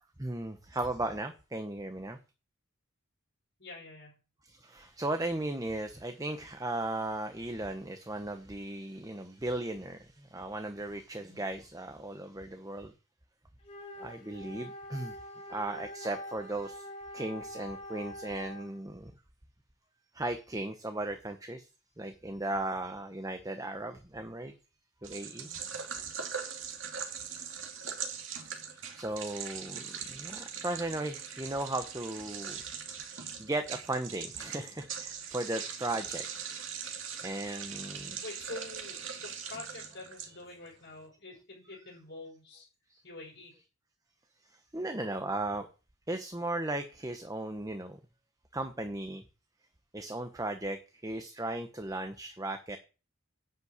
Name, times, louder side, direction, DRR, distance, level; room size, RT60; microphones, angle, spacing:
voice 1, 0.2-2.2 4.4-12.9 14.0-15.2 15.5-16.9 17.1-19.1 20.1-21.7 22.0-24.5 25.0-25.8 28.4-28.6 28.9-32.6 33.1-36.3 37.2-38.3 38.8-38.9 40.2-40.4 41.7-41.8 42.9-43.0 44.4-45.7 46.1-48.0 48.5-49.2 49.9-52.8, right 2 dB, 15° right, 7 dB, 1.0 m, -36 dB
voice 2, 3.6-4.2 11.2-11.4 25.4-25.7 38.2-42.7 43.0-43.6, left 2 dB, 55° left, -3 dB, 5.7 m, -47 dB
Wind instrument woodwind instrument, 13.6-18.8, left 1 dB, 30° left, 4.1 m, -45 dB
sound 1, 25.0-40.7, right 7 dB, 65° right, 2.4 m, -41 dB
10.5 x 5.7 x 8.2 m, 0.32 s
head